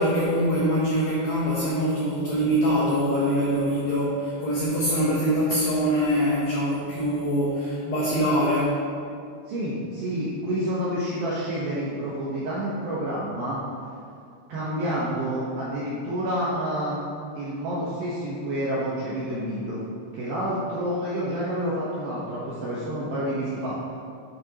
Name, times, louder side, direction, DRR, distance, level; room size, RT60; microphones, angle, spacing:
voice 1, 0.0-8.8 14.7-14.9, equal, 80° left, -6 dB, 2.1 m, -24 dB
voice 2, 9.5-13.6 14.5-17.0 17.3-19.8 20.1-23.8, equal, 75° right, -8 dB, 2.2 m, -29 dB
11.5 x 7.3 x 3.0 m, 2.3 s
omnidirectional pair, 6.0 m